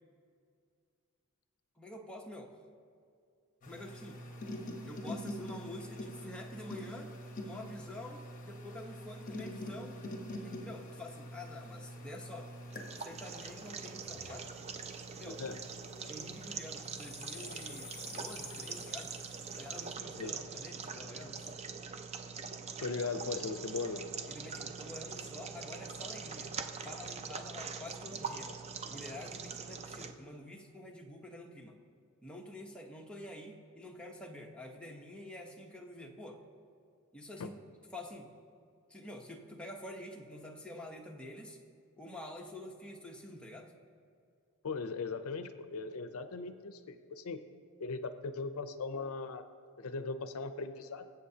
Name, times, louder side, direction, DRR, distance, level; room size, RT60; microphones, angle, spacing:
voice 1, 1.8-2.5 3.7-4.2 4.9-7.1 7.4-10.0 10.4-12.5 13.0-14.5 15.2-15.4 16.1-19.1 19.6-21.5 24.3-26.5 26.8-28.5 28.9-31.7 32.2-36.4 37.1-37.6 37.9-38.3 38.9-41.6 42.0-43.7, left 1 dB, 5° left, -1 dB, 0.9 m, -47 dB
sound 1, 3.6-16.3 16.8-19.7, left 1 dB, 35° left, 1.1 m, -46 dB
sound 2, 12.7-30.1, right 5 dB, 30° right, 0.5 m, -43 dB
voice 2, 15.2-15.6 20.2-20.3 22.8-24.1 37.4-37.5 44.6-47.4 47.8-49.4 49.8-51.1, left 4 dB, 70° left, 10 dB, 0.5 m, -38 dB
23.0 x 7.8 x 2.8 m, 2.3 s
head